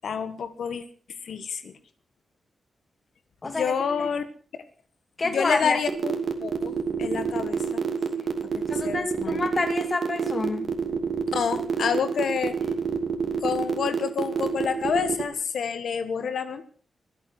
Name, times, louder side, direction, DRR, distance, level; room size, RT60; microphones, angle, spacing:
voice 1, 0.0-0.8 1.2-1.7 3.4-4.2 5.2-6.1 6.4-7.8 8.5-9.4 11.3-12.6 13.4-16.6, left 6 dB, 75° left, 10 dB, 1.7 m, -28 dB
voice 2, 3.4-4.1 5.2-5.8 8.7-10.8, left 3 dB, 35° left, 7 dB, 2.8 m, -28 dB
sound 1, 5.9-15.2, right 6 dB, 55° right, 2.8 m, -27 dB
23.5 x 8.3 x 6.0 m, 0.42 s
wide cardioid pair, 115°, 0 cm